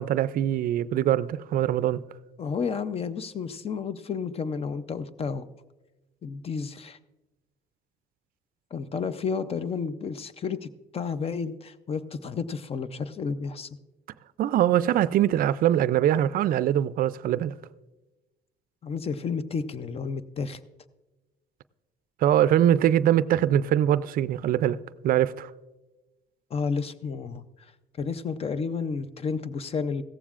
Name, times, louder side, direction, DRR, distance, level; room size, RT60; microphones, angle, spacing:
voice 1, 0.0-2.0 14.4-17.5 22.2-24.8 25.0-25.5, right 11 dB, 60° right, 0.4 m, -23 dB
voice 2, 2.4-5.4 6.2-7.0 8.7-13.7 18.8-20.6 26.5-27.4 28.0-30.0, left 5 dB, 35° left, 0.6 m, -31 dB
16.0 x 14.5 x 2.5 m
cardioid pair, 110°, 17 cm